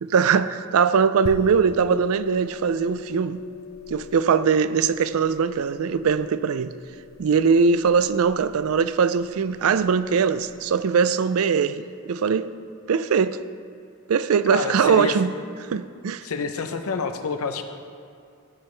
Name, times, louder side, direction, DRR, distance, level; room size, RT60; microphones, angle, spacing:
voice 1, 0.0-3.4 3.9-6.7 7.2-12.5 12.9-13.4 14.1-15.3 15.7-16.2, right 6 dB, 85° right, 0.4 m, -21 dB
sound 1, 1.3-10.6, left 6 dB, 45° left, 0.3 m, -40 dB
voice 2, 14.5-15.1 16.2-17.6, left 4 dB, 90° left, 0.7 m, -28 dB
13.5 x 8.6 x 3.3 m
head